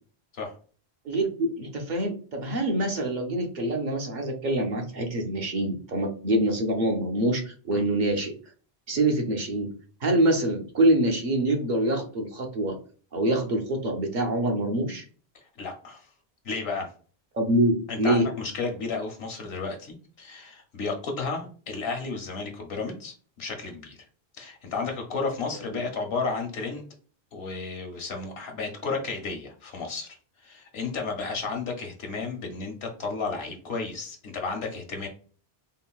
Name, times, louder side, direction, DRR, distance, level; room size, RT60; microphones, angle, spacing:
voice 1, 1.0-8.3 8.9-9.7 10.0-12.8 13.1-15.0 17.3-18.3 25.7-25.8, right 1 dB, 55° right, 2 dB, 0.7 m, -25 dB
voice 2, 15.6-16.1 16.4-16.9 17.9-24.0 24.4-26.8 27.3-30.1 30.4-35.1, left 4 dB, 75° left, 3 dB, 0.9 m, -32 dB
3.7 x 2.1 x 2.3 m, 0.40 s
omnidirectional pair, 1.1 m